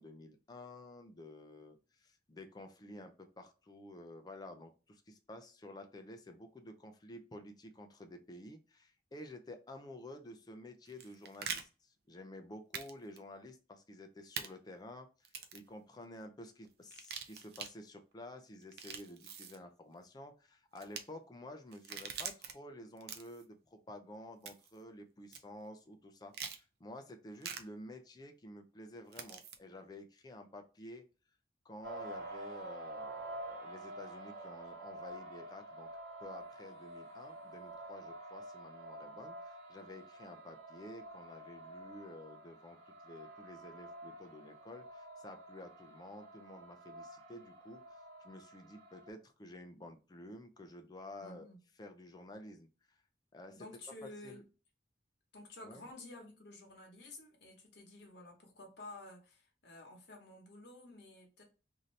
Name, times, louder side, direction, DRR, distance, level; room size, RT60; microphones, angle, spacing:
voice 1, 0.0-31.1 31.6-35.9 36.2-51.5 51.8-53.0 53.3-53.7 54.0-54.4 55.6-55.9, left 1 dB, 25° left, 0.4 m, -51 dB
sound 1, 10.9-11.6 12.7-12.9 13.2-13.3 14.4-14.5 15.2-15.7 16.9-17.7 18.6-19.6 20.8-21.0 21.7-22.5 23.0-23.4 24.5-24.8 25.3-25.4 26.3-26.6 27.4-27.6 29.1-29.6, right 7 dB, 60° right, 0.4 m, -43 dB
sound 2, 31.8-49.1, right 1 dB, 75° right, 1.4 m, -49 dB
voice 2, 51.2-51.6 53.5-54.4 55.3-61.4, left 2 dB, 70° left, 1.0 m, -52 dB
2.7 x 2.6 x 3.1 m
head